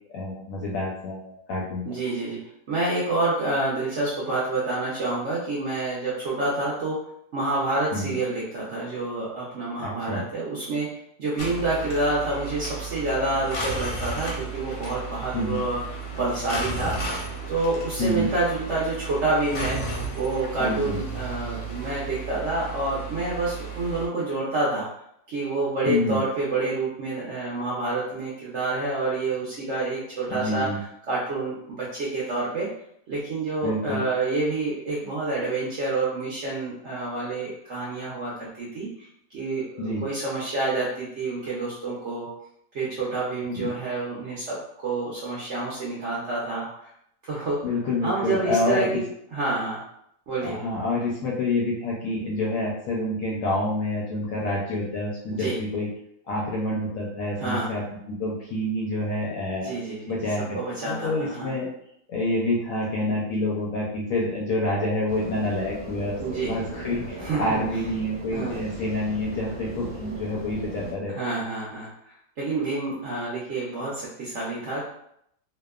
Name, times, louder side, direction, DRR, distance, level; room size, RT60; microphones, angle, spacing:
voice 1, 0.1-1.9 7.9-8.2 9.8-10.2 15.3-15.6 18.0-18.3 20.6-21.0 25.9-26.2 30.3-30.8 33.6-34.0 39.8-40.0 43.4-43.7 47.6-49.0 50.4-55.9 56.3-59.7 60.1-61.7 62.1-66.1 66.5-71.1, left 1 dB, 70° left, -3 dB, 0.8 m, -28 dB
voice 2, 1.8-2.4 2.7-7.0 7.3-10.9 11.2-17.2 17.5-19.8 20.1-24.9 25.3-30.7 31.1-32.7 33.1-42.3 42.7-46.9 47.3-47.6 48.0-49.1 49.3-49.8 50.3-50.6 55.3-55.6 57.4-57.7 59.6-60.1 60.5-61.5 66.2-66.5 67.2-67.4 68.3-68.6 71.1-74.9, right 2 dB, 65° right, -6 dB, 0.7 m, -28 dB
sound 1, 11.4-24.1, right 3 dB, 85° left, 1.2 m, -34 dB
sound 2, 65.1-70.9, right 1 dB, 30° right, 0.9 m, -38 dB
2.8 x 2.1 x 2.3 m, 0.73 s
omnidirectional pair, 1.8 m